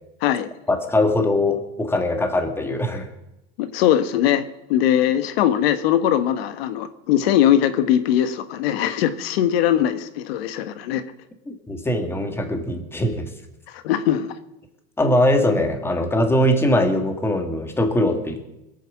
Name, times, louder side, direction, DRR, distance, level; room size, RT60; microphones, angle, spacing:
voice 1, 0.7-3.1 11.5-13.3 15.0-18.4, left 1 dB, 10° left, 6 dB, 1.8 m, -21 dB
voice 2, 3.6-4.4 4.7-11.0 13.7-14.3, left 11 dB, 85° left, 12 dB, 1.3 m, -20 dB
21.0 x 9.3 x 7.4 m, 0.90 s
supercardioid pair, 150°, 30 cm